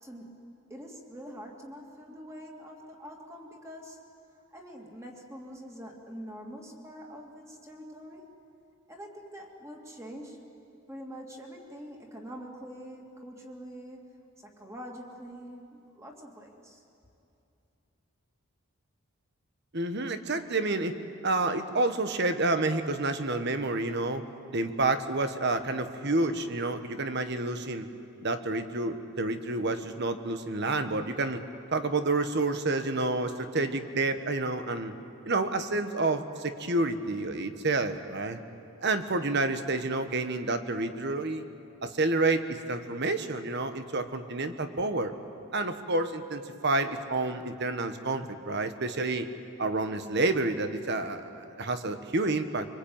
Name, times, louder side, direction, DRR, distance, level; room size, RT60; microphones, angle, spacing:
voice 1, 0.0-4.0 4.5-8.3 8.9-10.4 10.9-16.8, equal, 15° right, 0 dB, 2.8 m, -45 dB
voice 2, 19.7-21.0 21.2-24.2 24.5-27.9 28.2-31.4 31.7-34.9 35.3-38.4 38.8-41.4 41.8-45.1 45.5-49.3 49.6-52.7, right 2 dB, 50° right, 8 dB, 1.4 m, -29 dB
25.0 x 24.0 x 8.9 m, 2.7 s
head